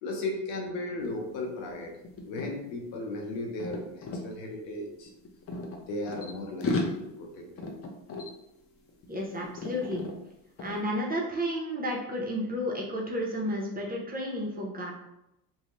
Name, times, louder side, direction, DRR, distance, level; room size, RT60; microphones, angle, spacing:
voice 1, 0.0-1.9 2.2-5.1 5.7-7.7, left 2 dB, 80° left, 1 dB, 0.9 m, -36 dB
sound 1, 1.0-1.2 1.4-4.2 5.0-6.3 6.6-9.2 9.4-10.1 10.6-10.8, left 2 dB, 30° left, 0.5 m, -36 dB
voice 2, 9.1-10.0 10.6-14.9, equal, 20° right, -2 dB, 0.7 m, -32 dB
2.7 x 2.1 x 3.0 m, 0.87 s
supercardioid pair, 90°, 46 cm